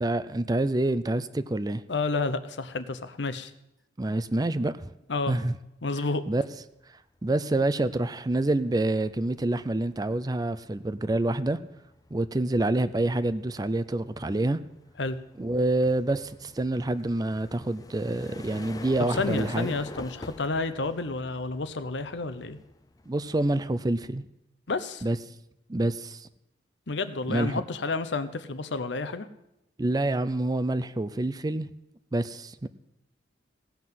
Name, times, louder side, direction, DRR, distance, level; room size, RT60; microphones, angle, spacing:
voice 1, 0.0-1.8 4.0-4.9 5.3-5.5 6.3-6.4 7.2-11.6 12.1-14.6 15.4-19.7 23.1-24.2 25.0-25.2 25.7-26.3 27.3-27.6 29.8-31.7 32.1-32.7, right 2 dB, 20° right, 14 dB, 0.4 m, -27 dB
voice 2, 1.9-3.5 5.1-5.4 5.8-6.2 15.0-15.2 19.1-22.6 24.7-25.0 26.9-29.3, left 3 dB, 85° left, 12 dB, 0.8 m, -30 dB
sound 1, 6.5-6.8 7.2-23.9, left 2 dB, 20° left, 0.6 m, -47 dB
16.5 x 5.8 x 7.6 m, 0.85 s
head